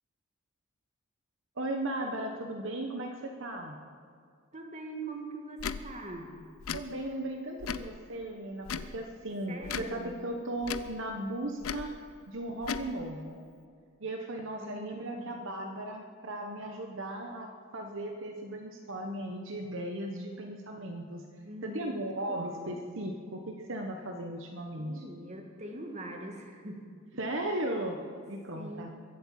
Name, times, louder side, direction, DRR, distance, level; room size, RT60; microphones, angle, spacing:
voice 1, 1.6-3.8 6.7-11.9 12.3-13.4 14.0-21.2 21.6-25.0 27.2-28.9, right 1 dB, 60° right, 3 dB, 1.1 m, -37 dB
voice 2, 4.5-6.4 9.5-10.2 14.6-15.4 21.4-22.7 24.8-26.8 27.1-27.2 28.2-28.3 28.5-28.9, right 1 dB, 35° right, 2 dB, 1.8 m, -43 dB
Tick / Tick-tock, 5.6-5.8 6.6-6.8 7.6-7.9 8.6-8.9 9.6-9.9 10.6-10.9 11.6-11.9 12.6-12.9, left 6 dB, 80° left, 0.6 m, -36 dB
22.5 x 7.9 x 7.4 m, 2.1 s
head